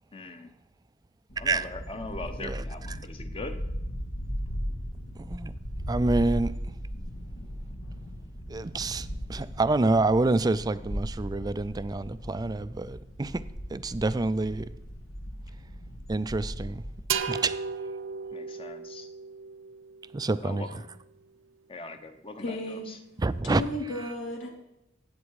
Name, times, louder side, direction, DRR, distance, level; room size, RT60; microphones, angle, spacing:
voice 1, 0.1-0.5 1.4-3.6 18.3-19.1 20.4-20.9 21.7-22.6, left 2 dB, 25° left, 0.9 m, -40 dB
sound 1, 1.3-17.0, equal, 85° left, 1.9 m, -37 dB
voice 2, 2.4-3.0 5.2-5.5 5.9-6.6 8.5-13.5 13.7-14.7 16.1-16.8 17.1-17.6 20.1-20.7 23.2-23.6, right 2 dB, 20° right, 0.4 m, -27 dB
sound 2, 17.1-20.7, right 6 dB, 65° right, 0.6 m, -35 dB
voice 3, 22.4-22.9 23.4-24.5, left 1 dB, 70° left, 3.0 m, -33 dB
18.5 x 8.3 x 4.7 m
head